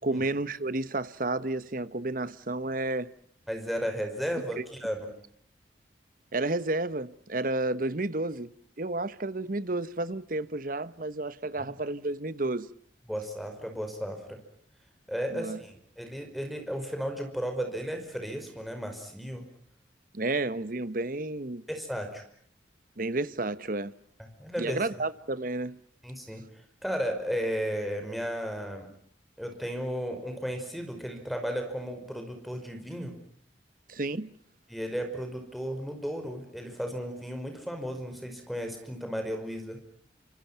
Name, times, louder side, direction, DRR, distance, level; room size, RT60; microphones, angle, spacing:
voice 1, 0.0-3.1 4.6-4.7 6.3-8.5 8.8-12.7 15.3-15.6 20.1-21.6 23.0-23.9 24.6-25.8 33.9-34.3, right 2 dB, 50° right, 1.1 m, -31 dB
voice 2, 3.5-5.1 11.6-11.8 13.1-14.4 15.1-19.5 21.7-22.2 24.2-24.8 26.0-26.4 26.8-28.9 29.4-33.1 34.7-39.8, equal, ahead, 5.4 m, -34 dB
30.0 x 27.0 x 5.8 m
head